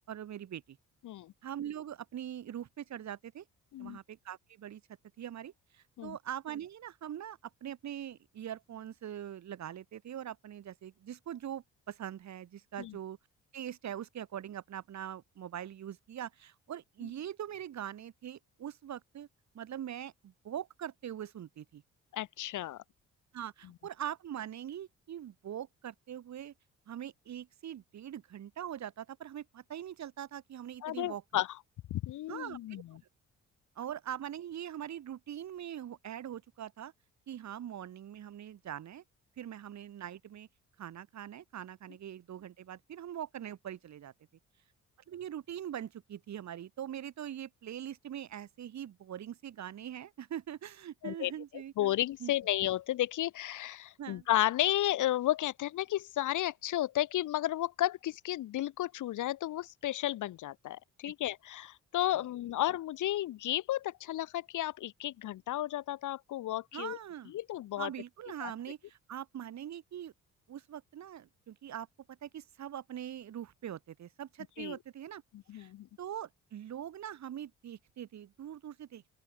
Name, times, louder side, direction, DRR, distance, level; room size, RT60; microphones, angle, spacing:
voice 1, 0.1-0.8 1.4-3.4 3.8-4.8 5.2-13.2 13.5-19.3 19.5-21.8 23.3-26.5 26.9-31.2 32.3-32.8 33.8-36.9 37.3-39.0 39.4-40.5 40.8-44.1 45.1-51.7 52.2-52.3 54.0-54.3 61.0-61.1 66.7-67.3 67.8-70.1 70.5-75.2 75.5-75.7 76.0-79.0, right 10 dB, 65° right, 4.1 m, -42 dB
voice 2, 22.1-22.8 30.8-31.5 31.9-32.8 51.0-51.3 51.8-67.0 67.3-67.9 68.4-68.5 74.6-74.8 75.3-75.9, left 14 dB, 80° left, 2.9 m, -33 dB
open air
cardioid pair, 90°, 30 cm